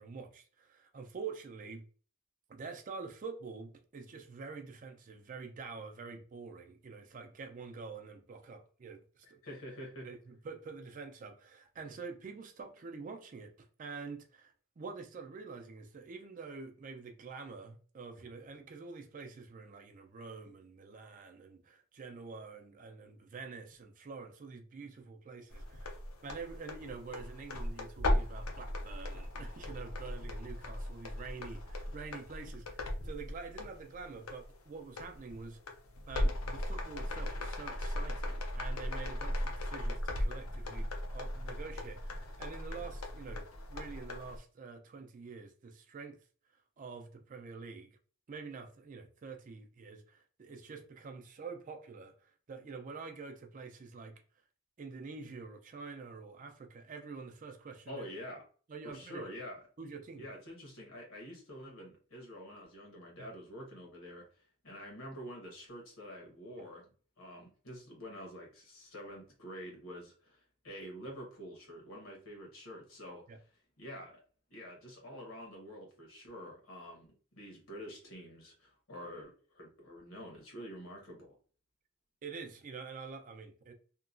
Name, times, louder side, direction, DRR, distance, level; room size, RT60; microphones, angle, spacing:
voice 1, 0.0-1.8 2.5-9.4 10.0-25.9 26.2-35.6 36.1-46.2 46.8-48.0 48.3-54.1 54.8-58.1 58.7-59.3 59.8-60.3 63.2-63.4 73.3-73.4 82.2-83.7, right 4 dB, 40° right, 0.4 m, -47 dB
voice 2, 9.4-10.1 57.9-58.4 58.8-59.6 60.2-64.3 64.6-73.2 73.8-74.2 74.5-81.4, equal, 70° left, 1.1 m, -47 dB
sound 1, 25.5-44.4, left 1 dB, 85° left, 0.6 m, -37 dB
2.9 x 2.2 x 2.4 m
head